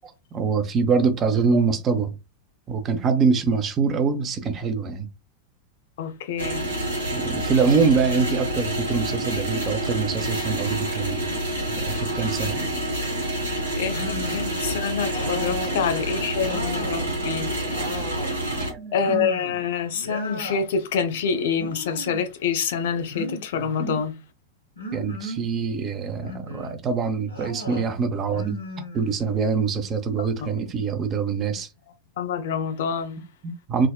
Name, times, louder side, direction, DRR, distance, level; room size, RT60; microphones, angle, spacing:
voice 1, 0.0-2.1 2.7-5.1 7.1-11.3 11.7-12.8 18.7-19.2 23.8-24.0 24.9-31.7 33.4-33.9, right 5 dB, 30° right, 0.5 m, -24 dB
voice 2, 6.0-6.7 13.8-17.5 18.9-24.1 30.2-30.5 32.2-33.2, left 6 dB, 55° left, 0.5 m, -27 dB
sound 1, 6.4-18.7, right 1 dB, 75° right, 0.9 m, -28 dB
sound 2, 13.8-14.6 15.1-17.0 17.4-18.4 19.0-19.6 19.9-20.7 21.5-22.3 23.1-24.0 24.8-25.5 26.1-26.8 27.3-27.9 28.3-29.4, equal, 80° left, 0.8 m, -35 dB
3.4 x 2.1 x 2.2 m
figure-of-eight pair, 90°, 0 cm